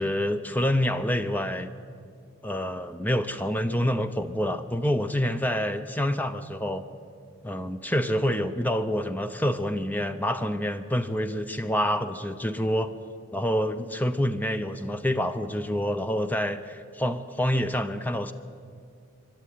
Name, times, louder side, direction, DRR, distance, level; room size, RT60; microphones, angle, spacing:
voice 1, 0.0-1.7 2.4-6.8 7.4-12.9 13.3-18.3, equal, 10° left, 10 dB, 0.6 m, -27 dB
23.0 x 12.0 x 9.3 m, 2.3 s
head